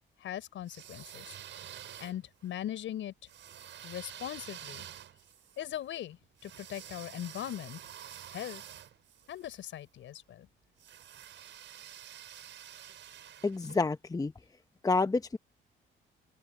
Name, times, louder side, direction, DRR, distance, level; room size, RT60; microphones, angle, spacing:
voice 1, 0.2-1.4 2.0-3.1 3.8-4.8 5.6-7.8 8.3-8.6 9.3-10.5, left 11 dB, 75° left, 6.0 m, -40 dB
sound 1, 0.6-2.5 3.3-9.6 10.8-13.8, right 10 dB, 70° right, 6.1 m, -49 dB
voice 2, 13.4-14.3 14.8-15.4, left 3 dB, 20° left, 0.9 m, -28 dB
open air
cardioid pair, 90°, 20 cm